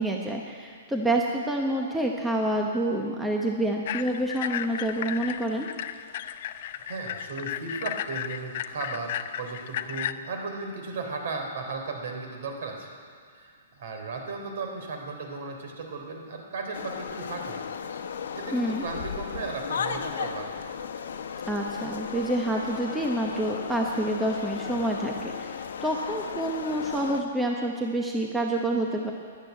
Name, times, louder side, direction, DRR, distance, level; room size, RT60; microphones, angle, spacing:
voice 1, 0.0-5.7 18.5-18.8 21.5-25.5 25.8-29.1, right 1 dB, 5° right, 0 dB, 0.8 m, -28 dB
sound 1, 3.9-10.1, left 11 dB, 45° left, 0.5 m, -34 dB
voice 2, 6.8-12.9 13.3-17.6 18.3-20.6, right 3 dB, 55° right, 3 dB, 3.3 m, -36 dB
sound 2, 16.7-27.2, left 7 dB, 75° left, 1.2 m, -35 dB
13.5 x 11.0 x 9.2 m, 2.1 s
hypercardioid pair, 170°, 0 cm